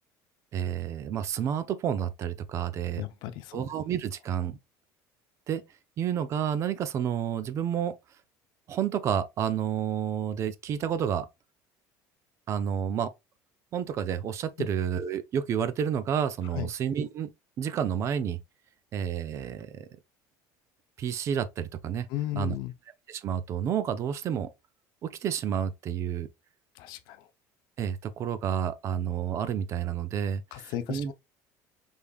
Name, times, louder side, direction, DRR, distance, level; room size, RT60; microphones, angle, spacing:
voice 1, 0.5-3.0 3.5-4.6 5.5-5.6 6.0-8.0 8.7-11.3 12.5-13.1 13.7-17.3 17.6-18.4 18.9-19.9 21.0-22.1 22.4-22.5 23.1-24.5 25.0-26.3 27.8-31.1, right 8 dB, 40° right, 0.5 m, -30 dB
voice 2, 3.0-3.6 14.6-14.7 16.5-16.7 22.1-22.7 26.8-27.3 30.5-31.1, left 13 dB, 65° left, 0.6 m, -35 dB
5.3 x 3.4 x 2.3 m
cardioid pair, 150°, 8 cm